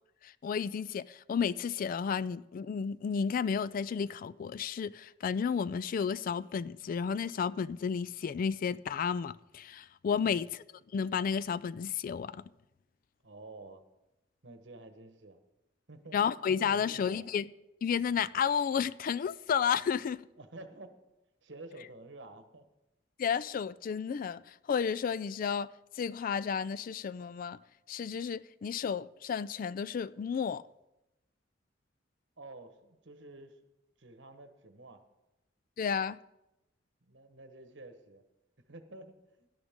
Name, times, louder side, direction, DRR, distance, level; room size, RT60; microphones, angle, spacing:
voice 1, 0.2-10.6 10.9-12.4 16.1-17.5 17.8-20.3 23.2-25.7 26.0-27.6 27.9-30.6 35.8-36.2, left 7 dB, 45° left, 0.3 m, -32 dB
voice 2, 10.1-10.5 13.2-13.8 14.4-15.4 15.9-16.2 16.7-17.3 20.4-21.0 21.4-22.6 32.4-33.6 34.0-35.0 37.0-38.2 38.7-39.5, right 2 dB, 70° right, 1.3 m, -50 dB
17.0 x 11.0 x 3.7 m
head